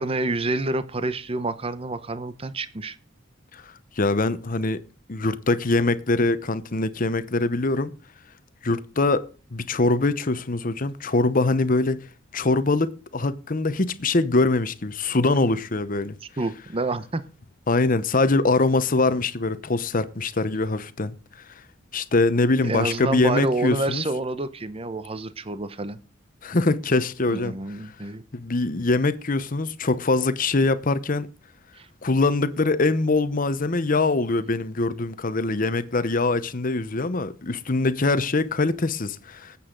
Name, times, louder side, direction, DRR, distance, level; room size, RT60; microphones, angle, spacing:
voice 1, 0.0-3.0 16.4-17.2 22.6-26.0 27.3-28.2 31.7-31.9, right 2 dB, 30° right, 0.8 m, -28 dB
voice 2, 4.0-4.8 5.1-7.9 8.6-9.2 9.5-12.1 12.3-16.2 17.7-21.1 21.9-24.0 26.4-27.6 28.3-31.3 32.0-39.6, left 3 dB, 45° left, 0.9 m, -23 dB
18.5 x 8.6 x 3.9 m
head